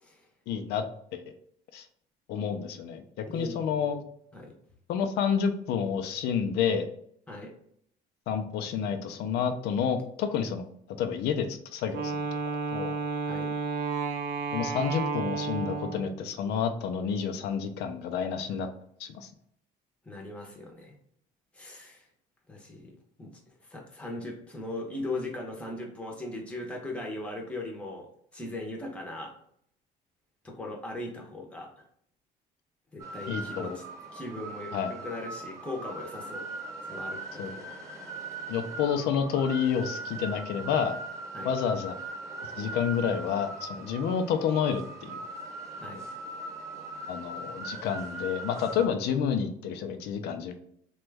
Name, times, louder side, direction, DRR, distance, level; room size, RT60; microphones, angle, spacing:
voice 1, 0.5-0.8 1.1-1.2 1.7-1.9 2.3-4.0 4.9-6.9 8.3-12.2 12.7-12.9 14.5-18.7 19.0-19.3 33.3-33.8 34.7-34.9 37.4-37.5 38.5-41.0 41.4-41.9 42.6-45.2 47.1-50.5, left 7 dB, 80° left, 8 dB, 0.5 m, -29 dB
voice 2, 3.3-4.0 4.3-4.5 7.3-7.5 13.2-13.5 20.0-21.0 21.5-22.1 22.5-23.4 23.7-28.1 28.3-29.3 30.4-31.9 32.9-33.8 34.1-36.5 36.8-37.7 38.4-38.5 41.3-41.5 45.8-46.0, left 2 dB, 5° left, 0 dB, 0.7 m, -39 dB
Wind instrument woodwind instrument, 11.9-16.2, right 4 dB, 70° right, 0.5 m, -32 dB
sound 1, 33.0-48.9, right 2 dB, 15° right, 1.0 m, -40 dB
3.0 x 2.2 x 3.3 m, 0.67 s
cardioid pair, 110°, 17 cm